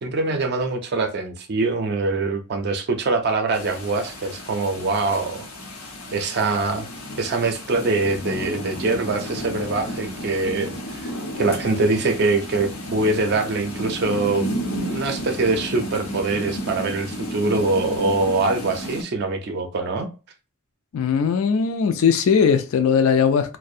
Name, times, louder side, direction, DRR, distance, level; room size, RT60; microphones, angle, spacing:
voice 1, 0.0-5.5 6.1-6.9 7.2-11.1 11.4-14.5 14.8-20.1, right 3 dB, 45° right, 0.4 m, -23 dB
sound 1, 3.5-19.0, equal, 90° left, 0.8 m, -32 dB
voice 2, 20.9-23.6, left 6 dB, 65° left, 0.3 m, -19 dB
2.4 x 2.1 x 2.6 m
head